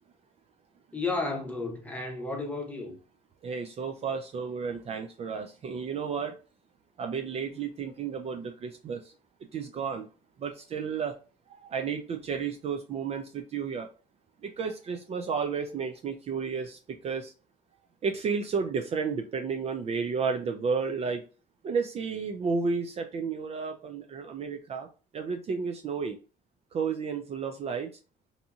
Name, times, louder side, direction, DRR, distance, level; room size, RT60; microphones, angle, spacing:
voice 1, 0.9-3.0, left 3 dB, 10° left, 0.8 m, -32 dB
voice 2, 3.4-6.4 7.0-9.1 9.5-10.1 10.4-11.2 11.5-13.9 14.4-17.3 18.0-21.2 21.6-24.9 25.1-26.2 26.7-27.9, right 5 dB, 40° right, 0.3 m, -32 dB
2.8 x 2.6 x 2.3 m
cardioid pair, 110°, 17 cm